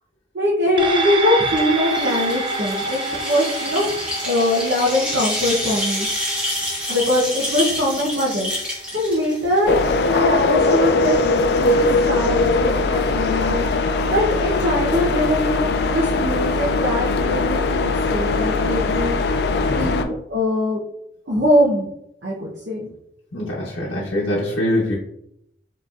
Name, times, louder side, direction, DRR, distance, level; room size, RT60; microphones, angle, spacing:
voice 1, 0.3-3.9 4.2-6.1 6.9-8.5 8.9-9.8 10.1-13.7 14.1-19.2 19.8-20.8 21.3-21.9 22.2-22.9, left 1 dB, 65° right, -4 dB, 0.8 m, -22 dB
sound 1, 0.8-9.5 9.8-9.9, right 2 dB, 25° right, 0.4 m, -28 dB
sound 2, 1.5-9.9, equal, 5° right, 1.0 m, -28 dB
sound 3, 9.7-20.0, left 3 dB, 60° left, 0.3 m, -20 dB
voice 2, 23.3-24.9, left 1 dB, 85° left, -5 dB, 0.8 m, -23 dB
4.9 x 3.1 x 2.4 m, 0.76 s
head